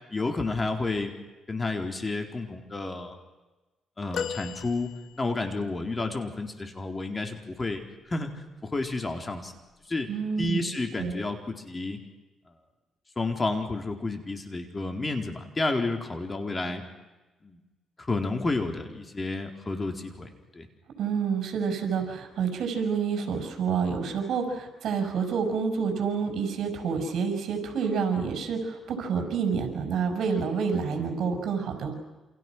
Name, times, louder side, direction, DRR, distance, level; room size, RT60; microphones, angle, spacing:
voice 1, 0.1-1.1 1.5-3.1 4.0-4.9 5.2-7.8 8.1-8.3 8.7-9.5 9.9-10.1 10.4-12.0 13.2-16.8 17.4-17.6 18.0-20.7, left 3 dB, 25° left, 4 dB, 4.1 m, -30 dB
sound 1, 4.1-5.6 7.9-8.1 9.4-9.5, left 7 dB, 65° left, 1.7 m, -36 dB
voice 2, 10.1-10.6 11.0-11.2 21.0-31.9, right 6 dB, 70° right, 4 dB, 6.1 m, -28 dB
29.0 x 28.0 x 6.2 m, 1.1 s
cardioid pair, 90°, 0 cm